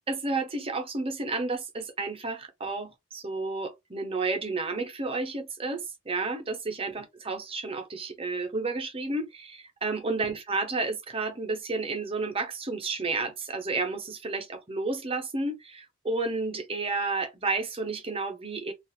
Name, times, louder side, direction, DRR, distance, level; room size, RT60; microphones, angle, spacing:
voice 1, 0.1-18.7, right 3 dB, 25° right, 0.6 m, -31 dB
2.4 x 2.3 x 3.1 m
head